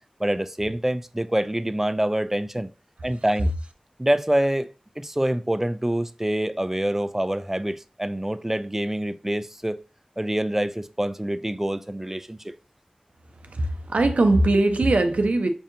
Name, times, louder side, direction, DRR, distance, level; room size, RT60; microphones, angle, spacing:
voice 1, 0.2-2.7 3.0-3.5 4.0-9.8 10.2-12.5, right 1 dB, 15° right, 0.4 m, -26 dB
voice 2, 13.5-15.5, right 2 dB, 90° right, 0.5 m, -20 dB
5.3 x 2.7 x 2.5 m
wide cardioid pair, 40°, 2 cm